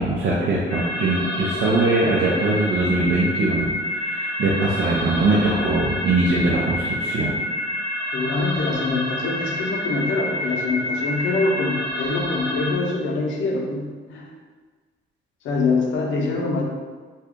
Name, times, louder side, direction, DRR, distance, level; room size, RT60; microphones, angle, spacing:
voice 1, 0.0-7.4, right 2 dB, 70° right, -5 dB, 0.6 m, -21 dB
sound 1, 0.7-12.7, left 1 dB, 5° left, 0.6 m, -28 dB
voice 2, 8.1-14.3 15.4-16.6, left 3 dB, 75° left, 0 dB, 0.6 m, -24 dB
2.8 x 2.3 x 3.5 m, 1.4 s
cardioid pair, 90°, 20 cm